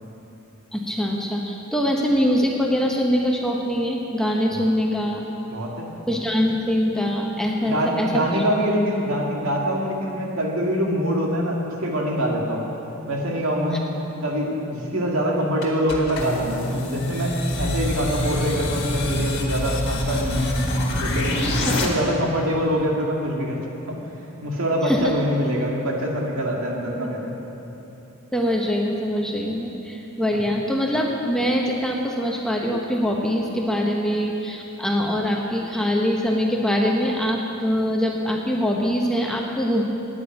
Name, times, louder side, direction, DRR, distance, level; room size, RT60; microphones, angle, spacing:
voice 1, 0.7-5.2 6.1-8.4 21.6-21.9 24.8-25.1 28.3-39.8, equal, 5° left, -1 dB, 0.9 m, -23 dB
voice 2, 5.4-5.9 7.6-12.6 13.1-13.8 14.2-20.5 21.0-23.6 23.9-24.0 24.4-27.3 30.3-30.4, equal, 80° right, -1 dB, 2.0 m, -24 dB
sound 1, 15.6-21.9, left 1 dB, 50° left, 1.7 m, -25 dB
9.1 x 8.8 x 9.6 m, 2.9 s
head